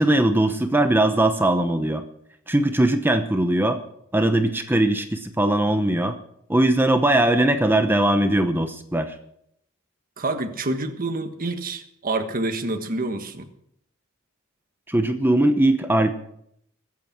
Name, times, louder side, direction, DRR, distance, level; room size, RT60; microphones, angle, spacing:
voice 1, 0.0-2.0 2.5-3.8 4.1-6.1 6.5-9.1 14.9-16.1, right 1 dB, 10° right, 7 dB, 0.9 m, -20 dB
voice 2, 10.2-13.5, right 2 dB, 45° right, 6 dB, 1.5 m, -27 dB
21.5 x 8.7 x 6.0 m, 0.72 s
head